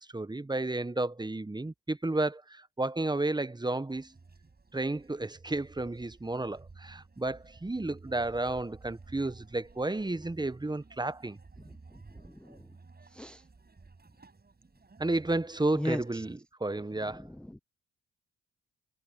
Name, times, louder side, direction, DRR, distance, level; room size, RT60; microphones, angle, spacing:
voice 1, 0.1-4.1 4.7-11.4 15.0-17.3, right 2 dB, 15° right, 1.1 m, -32 dB
sound 1, 3.9-16.4, right 3 dB, 30° right, 5.3 m, -54 dB
voice 2, 12.2-12.6 13.1-13.4 15.8-16.2 17.1-17.6, left 1 dB, 5° left, 0.6 m, -37 dB
hypercardioid pair, 45°, 30 cm